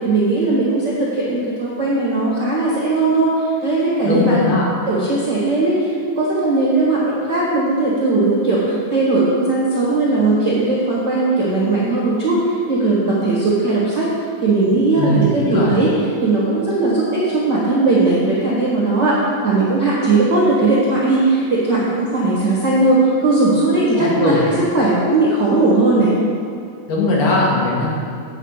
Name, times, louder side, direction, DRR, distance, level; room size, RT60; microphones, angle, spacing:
voice 1, 0.0-4.4 4.9-14.1 14.4-15.9 16.2-24.4 24.7-26.1, right 2 dB, 50° right, -7 dB, 1.3 m, -18 dB
voice 2, 4.0-4.7 15.0-15.7 24.0-24.4 26.9-27.9, left 2 dB, 80° left, -4 dB, 3.8 m, -19 dB
8.9 x 5.7 x 8.1 m, 2.3 s
omnidirectional pair, 4.5 m